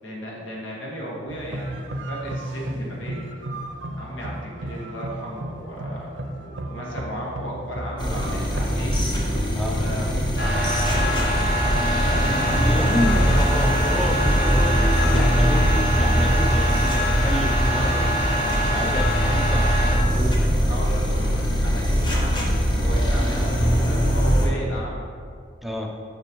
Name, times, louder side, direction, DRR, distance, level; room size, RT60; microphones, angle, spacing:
voice 1, 0.0-1.8 2.1-3.3 3.9-9.0 9.8-13.4 14.3-15.8 20.7-25.1, equal, 85° left, -3 dB, 1.5 m, -35 dB
sound 1, 1.3-13.7, right 1 dB, 75° right, 0.6 m, -34 dB
sound 2, 8.0-24.5, equal, 25° left, 0.9 m, -21 dB
sound 3, 10.4-20.0, equal, 60° left, 1.6 m, -26 dB
voice 2, 12.3-14.8 15.1-15.6 16.0-18.1 18.7-20.6 25.6-25.9, equal, ahead, 0 dB, 0.4 m, -29 dB
6.7 x 6.0 x 3.0 m, 2.1 s
head